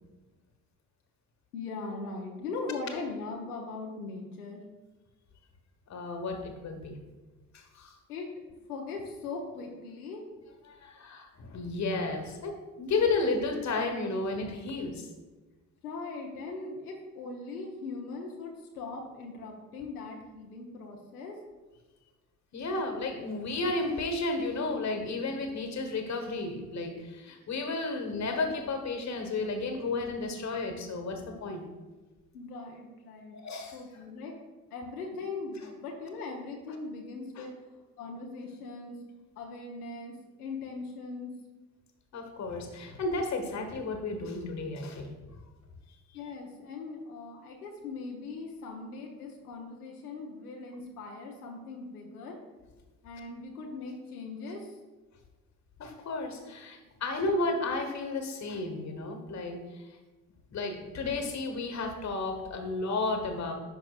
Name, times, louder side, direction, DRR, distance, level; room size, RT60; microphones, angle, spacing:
voice 1, 1.5-4.6 8.1-8.2 8.7-10.2 15.8-21.4 32.3-33.4 33.7-34.3 34.7-37.5 38.0-39.0 39.4-41.3 46.1-52.4 53.0-54.8, left 3 dB, 80° left, 0 dB, 0.9 m, -40 dB
voice 2, 5.9-6.9 7.5-7.9 10.7-12.5 12.8-15.1 22.5-31.6 33.3-33.8 37.4-37.5 42.1-45.1 55.8-59.6 60.5-63.5, left 3 dB, 35° left, 5 dB, 1.4 m, -32 dB
10.5 x 5.4 x 2.4 m, 1.2 s
figure-of-eight pair, 50°, 45 cm